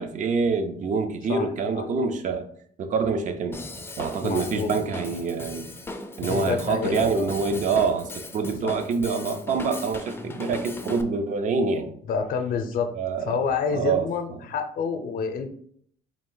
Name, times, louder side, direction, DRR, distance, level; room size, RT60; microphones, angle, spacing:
voice 1, 0.0-2.5 2.8-3.7 4.0-5.7 6.2-11.9 12.9-13.4 13.7-14.1, right 4 dB, 50° right, 8 dB, 0.5 m, -26 dB
Drum kit / Drum, 3.5-11.0, left 2 dB, 15° left, 0.5 m, -38 dB
voice 2, 4.2-4.8 6.2-7.3 8.6-8.7 12.1-12.9 13.2-15.5, left 5 dB, 55° left, 7 dB, 0.6 m, -28 dB
3.6 x 2.5 x 3.8 m, 0.62 s
cardioid pair, 110°, 17 cm